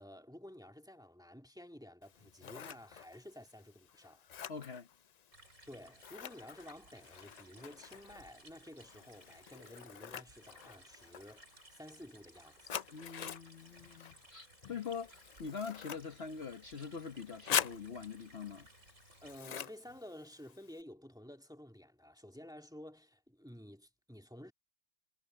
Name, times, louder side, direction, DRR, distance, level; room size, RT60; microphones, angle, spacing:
voice 1, 0.0-4.2 5.7-12.8 19.2-24.5, left 1 dB, 5° right, 2.0 m, -52 dB
Scissors, 2.0-20.8, left 8 dB, 75° left, 0.3 m, -45 dB
voice 2, 4.5-4.9 12.9-18.7, left 5 dB, 50° left, 1.3 m, -44 dB
sound 1, 5.3-19.4, right 1 dB, 65° right, 5.5 m, -61 dB
omnidirectional pair, 1.4 m